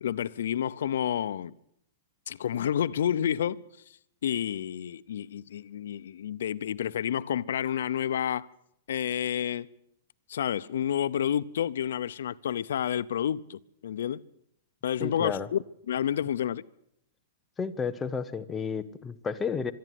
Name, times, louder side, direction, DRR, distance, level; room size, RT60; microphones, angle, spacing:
voice 1, 0.0-1.5 2.3-3.6 4.2-8.5 8.9-9.7 10.3-14.2 14.8-16.6, left 9 dB, 80° left, 0.7 m, -30 dB
voice 2, 15.0-15.5 17.6-19.7, left 5 dB, 10° left, 0.8 m, -32 dB
24.5 x 11.5 x 9.3 m
supercardioid pair, 175°, 0 cm